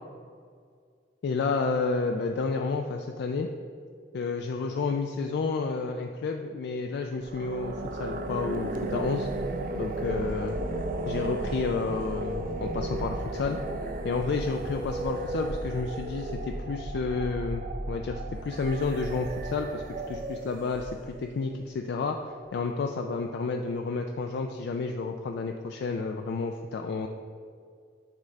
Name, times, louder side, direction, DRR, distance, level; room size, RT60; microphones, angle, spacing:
voice 1, 1.2-3.5 4.1-9.3 9.7-10.6 11.1-13.6 14.0-27.1, left 4 dB, 60° left, 4 dB, 0.3 m, -30 dB
sound 1, 7.2-21.3, right 2 dB, 45° right, 0.4 m, -34 dB
9.2 x 3.3 x 3.6 m, 2.1 s
head